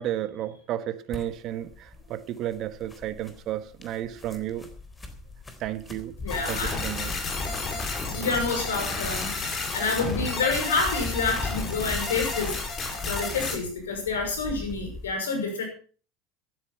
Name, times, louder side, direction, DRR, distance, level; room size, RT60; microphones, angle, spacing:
voice 1, 0.0-4.7 5.6-6.1 6.5-7.1, right 12 dB, 50° right, 1.5 m, -32 dB
sound 1, 1.1-15.1, left 2 dB, 15° left, 3.7 m, -39 dB
voice 2, 6.2-6.8 8.1-9.4 9.7-12.6 13.0-15.6, left 4 dB, 85° left, 5.9 m, -28 dB
sound 2, 6.3-13.6, left 3 dB, 35° left, 5.7 m, -31 dB
14.5 x 12.0 x 5.8 m
hypercardioid pair, 80°, 0 cm